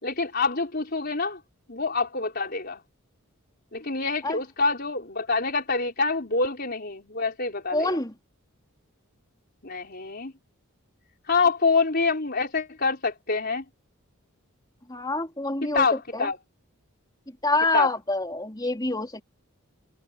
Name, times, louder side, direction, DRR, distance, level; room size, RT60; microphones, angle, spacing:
voice 1, 0.0-1.4 1.7-2.8 3.7-8.0 9.6-10.3 11.3-13.6 15.7-16.4 17.7-17.9, left 4 dB, 45° left, 4.6 m, -26 dB
voice 2, 7.7-8.1 14.9-15.9 16.1-16.3 17.4-19.2, left 2 dB, 20° left, 3.9 m, -26 dB
head